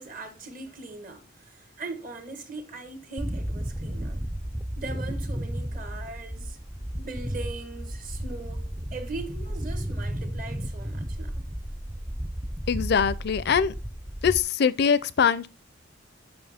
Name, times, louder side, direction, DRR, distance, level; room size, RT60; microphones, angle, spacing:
voice 1, 0.0-4.2 4.8-6.6 7.0-11.4, right 3 dB, 45° right, 1.3 m, -40 dB
sound 1, 3.2-14.4, equal, 10° right, 0.4 m, -33 dB
voice 2, 12.7-13.7 14.2-15.5, left 7 dB, 60° left, 0.5 m, -22 dB
7.1 x 5.6 x 3.5 m
head